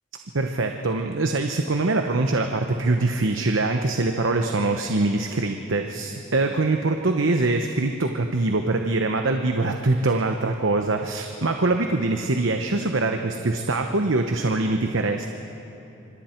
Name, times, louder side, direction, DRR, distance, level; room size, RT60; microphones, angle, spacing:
voice 1, 0.3-15.3, right 2 dB, 70° right, 5 dB, 1.0 m, -23 dB
26.0 x 25.5 x 4.5 m, 2.9 s
head